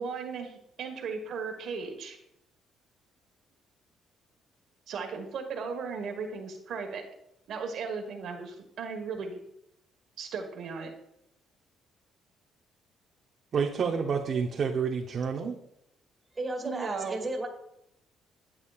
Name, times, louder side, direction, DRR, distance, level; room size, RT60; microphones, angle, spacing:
voice 1, 0.0-2.2 4.9-7.0 7.5-9.4 10.2-10.9 16.6-17.2, right 5 dB, 65° right, 3 dB, 1.4 m, -36 dB
voice 2, 13.5-15.6, right 6 dB, 45° right, 1 dB, 0.8 m, -29 dB
voice 3, 16.3-17.5, right 2 dB, 20° right, 1 dB, 2.2 m, -33 dB
11.0 x 8.6 x 2.4 m, 0.78 s
cardioid pair, 125°, 0 cm